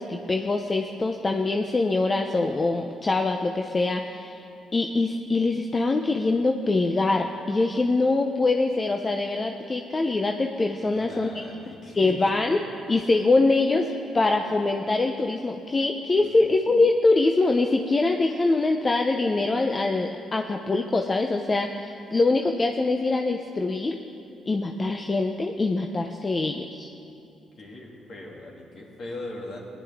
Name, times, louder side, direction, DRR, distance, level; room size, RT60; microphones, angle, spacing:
voice 1, 0.0-4.4 4.7-11.4 11.9-12.6 12.9-13.9 14.1-24.0 24.5-26.9, left 3 dB, 30° left, 3 dB, 0.6 m, -24 dB
voice 2, 10.8-12.3 16.2-16.4 27.6-29.6, left 2 dB, 55° left, -2 dB, 2.6 m, -40 dB
17.5 x 10.5 x 3.6 m, 2.6 s
cardioid pair, 90°, 0 cm